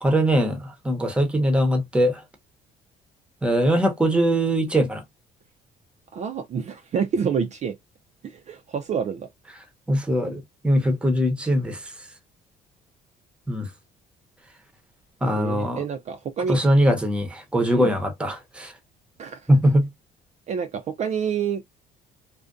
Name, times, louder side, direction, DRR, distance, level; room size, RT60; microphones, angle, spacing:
voice 1, 0.0-2.2 3.4-5.0 9.9-11.8 13.5-13.7 15.2-15.8 16.5-18.7 19.5-19.9, equal, 5° right, 0.7 m, -21 dB
voice 2, 6.1-7.8 8.2-9.3 15.4-16.6 17.8-17.9 19.2-19.5 20.5-21.6, right 7 dB, 45° right, 0.4 m, -28 dB
2.5 x 2.1 x 2.3 m
cardioid pair, 110°, 17 cm